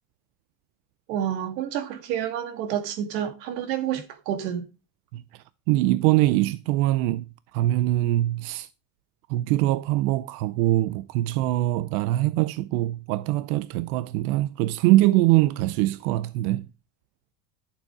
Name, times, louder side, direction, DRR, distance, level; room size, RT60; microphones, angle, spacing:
voice 1, 1.1-4.6, right 10 dB, 85° right, 2.4 m, -29 dB
voice 2, 5.7-7.2 7.5-8.7 9.3-16.7, right 16 dB, 65° right, 0.7 m, -23 dB
12.0 x 7.2 x 4.7 m
cardioid pair, 170°, 48 cm